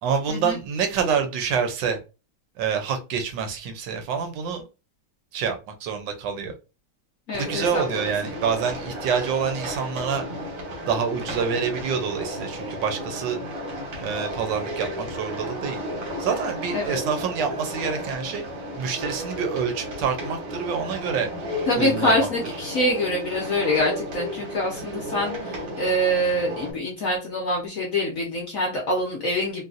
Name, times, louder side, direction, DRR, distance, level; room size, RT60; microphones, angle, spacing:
voice 1, 0.0-2.0 2.6-4.6 5.3-6.5 7.3-10.2 10.8-13.4 14.0-15.8 16.2-18.4 18.8-21.3 21.7-22.3, right 6 dB, 70° right, 5 dB, 1.3 m, -27 dB
voice 2, 7.3-8.1 16.7-17.0 21.7-29.6, left 1 dB, 60° left, -1 dB, 0.9 m, -25 dB
sound 1, 7.3-26.7, equal, 90° right, 2.1 m, -33 dB
3.9 x 2.2 x 2.5 m, 0.30 s
omnidirectional pair, 2.2 m